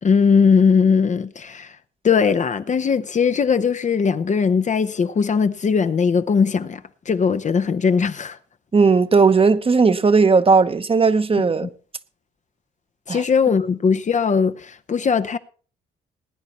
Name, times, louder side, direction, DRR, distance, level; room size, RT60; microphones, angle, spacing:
voice 1, 0.0-1.8 2.0-6.8 7.1-8.4 13.1-15.4, left 6 dB, 35° left, 0.8 m, -19 dB
voice 2, 8.7-11.7 13.1-13.2, right 4 dB, 30° right, 1.0 m, -16 dB
19.5 x 9.7 x 4.2 m
cardioid pair, 90°, 20 cm